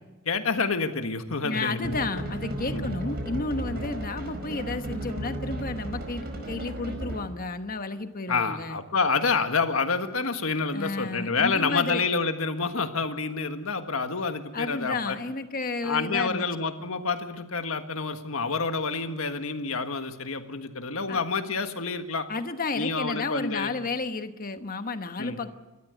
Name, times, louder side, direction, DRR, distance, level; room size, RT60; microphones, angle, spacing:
voice 1, 0.2-2.2 2.7-2.9 3.7-3.9 8.3-15.2 15.8-22.3 22.7-23.7 25.2-25.4, left 4 dB, 75° left, 7 dB, 1.6 m, -28 dB
voice 2, 1.4-8.8 10.7-12.0 14.5-16.5 21.1-21.2 22.3-25.5, left 3 dB, 40° left, 9 dB, 1.2 m, -32 dB
sound 1, 1.8-7.4, right 1 dB, 50° right, 4.8 m, -34 dB
29.0 x 13.5 x 8.1 m, 1.1 s
head